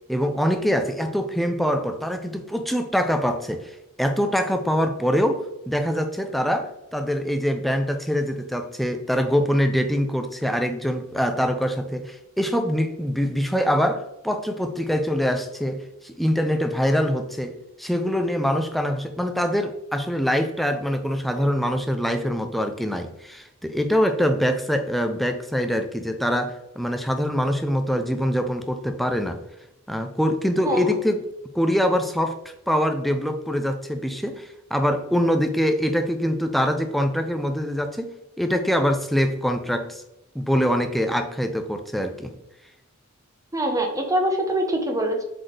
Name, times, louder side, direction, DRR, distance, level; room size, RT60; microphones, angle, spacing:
voice 1, 0.1-3.7 4.0-29.4 29.9-31.2 31.5-32.4 32.7-40.0 40.3-42.3, equal, ahead, 6 dB, 0.5 m, -24 dB
voice 2, 43.5-45.2, right 1 dB, 15° right, 3 dB, 1.0 m, -24 dB
7.7 x 4.1 x 3.4 m, 0.87 s
head